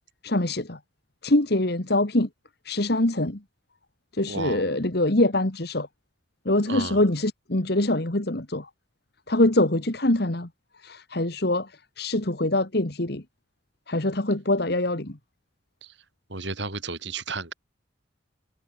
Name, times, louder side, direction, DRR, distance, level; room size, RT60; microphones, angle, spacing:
voice 1, 0.2-0.8 1.2-2.3 2.7-3.4 4.1-5.9 6.5-8.7 9.3-10.5 10.8-11.7 12.0-13.2 13.9-15.2, left 1 dB, 55° left, 1.9 m, -24 dB
voice 2, 4.3-4.7 6.7-7.0 15.8-15.9 16.3-17.5, right 3 dB, 65° right, 4.0 m, -33 dB
head